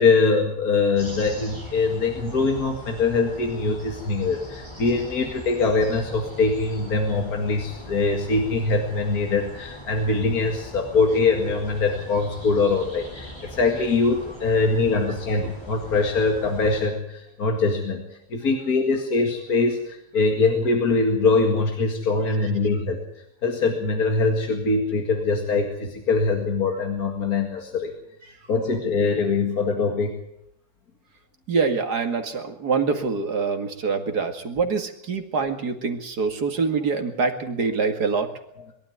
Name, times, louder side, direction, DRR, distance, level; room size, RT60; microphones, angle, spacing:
voice 1, 0.0-23.0 23.4-27.9 28.5-30.2, left 3 dB, 65° left, 3 dB, 2.6 m, -23 dB
sound 1, 0.9-16.9, equal, 15° left, 7.7 m, -40 dB
voice 2, 31.5-38.3, right 5 dB, 85° right, 6 dB, 2.7 m, -25 dB
22.5 x 12.5 x 9.4 m, 0.78 s
omnidirectional pair, 1.7 m